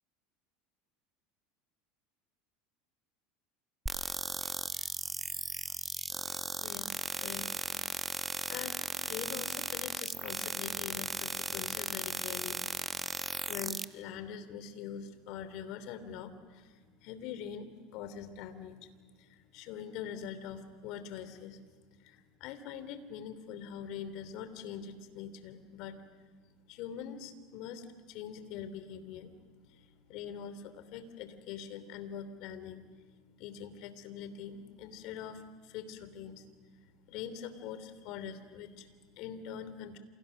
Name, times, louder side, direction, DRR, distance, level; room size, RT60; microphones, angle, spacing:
sound 1, 3.9-13.8, right 2 dB, 10° right, 1.2 m, -36 dB
voice 1, 6.6-7.5 8.5-12.6 13.5-18.9 19.2-21.6 22.0-26.0 26.7-29.3 29.7-32.8 33.4-36.4 37.1-40.0, left 8 dB, 60° left, 11 dB, 3.1 m, -43 dB
29.0 x 29.0 x 6.5 m, 1.4 s
hypercardioid pair, 80°, 0 cm